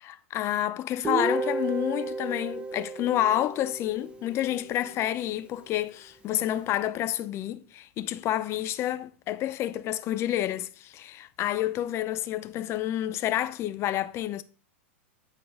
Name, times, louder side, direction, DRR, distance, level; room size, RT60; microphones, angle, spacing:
voice 1, 0.0-14.4, left 13 dB, 40° left, 0.7 m, -29 dB
Guitar, 1.0-4.9, right 3 dB, 15° right, 1.0 m, -33 dB
9.4 x 4.5 x 5.1 m
hypercardioid pair, 105°, 7 cm